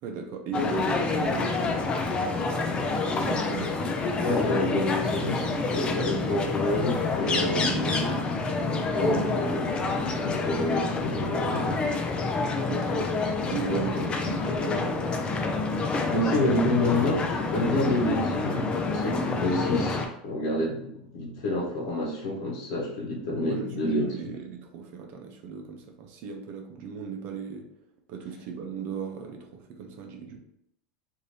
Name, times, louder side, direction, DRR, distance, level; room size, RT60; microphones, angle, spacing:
voice 1, 0.0-3.7 7.3-9.0 12.7-13.1 13.5-13.9 14.2-15.3 23.4-27.7 28.1-30.4, right 6 dB, 50° right, 3 dB, 0.6 m, -36 dB
sound 1, 0.5-20.1, left 3 dB, 25° left, 0.4 m, -28 dB
voice 2, 4.2-7.6 8.9-11.8 13.7-14.1 16.1-24.1, left 1 dB, 70° left, -3 dB, 1.0 m, -28 dB
3.2 x 2.7 x 2.7 m, 0.78 s
supercardioid pair, 140°, 4 cm